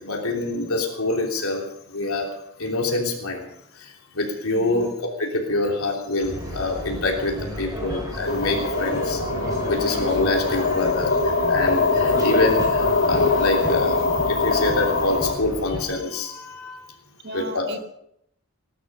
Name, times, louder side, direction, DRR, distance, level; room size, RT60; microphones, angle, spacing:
voice 1, 0.0-1.6 1.9-2.3 2.6-3.4 4.1-4.9 5.2-9.2 9.7-11.1 11.5-16.8 17.3-17.6, left 2 dB, 80° left, 0 dB, 3.2 m, -25 dB
voice 2, 4.5-4.9 7.8-7.9 17.2-17.8, right 2 dB, 50° right, 7 dB, 1.4 m, -37 dB
sound 1, 6.2-15.8, equal, 15° right, 5.6 m, -32 dB
sound 2, 8.3-15.3, left 3 dB, 60° left, 1.8 m, -23 dB
19.0 x 12.0 x 5.5 m, 0.74 s
head